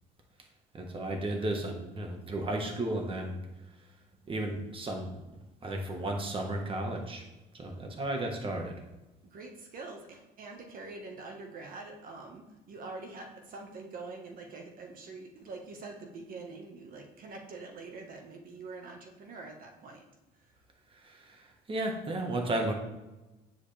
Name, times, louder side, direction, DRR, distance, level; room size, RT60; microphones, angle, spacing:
voice 1, 0.7-3.3 4.3-5.1 5.6-7.2 7.5-8.8 20.9-22.7, right 1 dB, 30° right, 3 dB, 1.5 m, -34 dB
voice 2, 9.3-20.0, right 3 dB, 55° right, 2 dB, 1.6 m, -45 dB
9.4 x 8.0 x 3.5 m, 1.1 s
cardioid pair, 110°, 17 cm